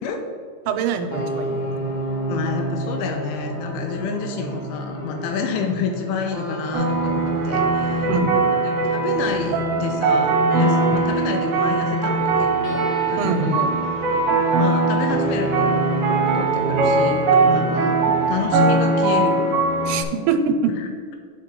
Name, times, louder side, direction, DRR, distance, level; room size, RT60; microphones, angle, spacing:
voice 1, 0.7-1.9 8.0-8.5 13.2-13.6 19.9-20.7, right 5 dB, 90° right, 8 dB, 3.2 m, -24 dB
sound 1, 1.1-19.5, right 1 dB, 55° left, 2.3 m, -31 dB
voice 2, 2.3-8.1 8.6-12.8 13.1-13.7 14.6-15.8 16.3-18.0 18.3-19.9 20.8-20.9, left 5 dB, 85° left, 4 dB, 2.9 m, -29 dB
sound 2, 6.7-20.0, right 3 dB, 70° right, 2.9 m, -20 dB
11.5 x 4.6 x 3.1 m, 2.1 s
omnidirectional pair, 5.7 m